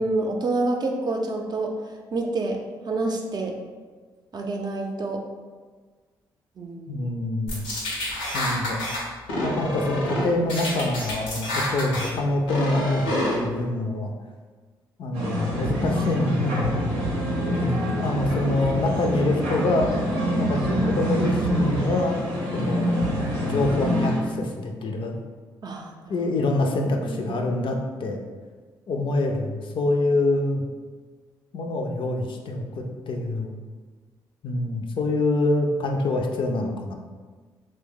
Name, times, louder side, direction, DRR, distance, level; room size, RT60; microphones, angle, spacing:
voice 1, 0.0-2.6 2.9-3.6 4.3-5.2 6.6-7.1 25.6-26.3 26.9-27.4, right 2 dB, 40° right, 2 dB, 0.5 m, -28 dB
voice 2, 6.9-7.6 8.3-8.8 9.4-14.1 15.0-16.8 17.6-19.9 20.4-22.2 22.5-22.9 23.4-25.1 26.1-28.2 28.9-30.6 31.5-33.5 34.4-36.9, left 2 dB, 55° left, 3 dB, 0.4 m, -25 dB
sound 1, 7.5-9.0 9.3-10.2 10.5-12.1 12.5-13.3, left 1 dB, 85° left, 0.7 m, -28 dB
sound 2, 15.1-24.2, equal, 85° right, 0.7 m, -25 dB
2.7 x 2.1 x 3.7 m, 1.4 s
hypercardioid pair, 40°, 10 cm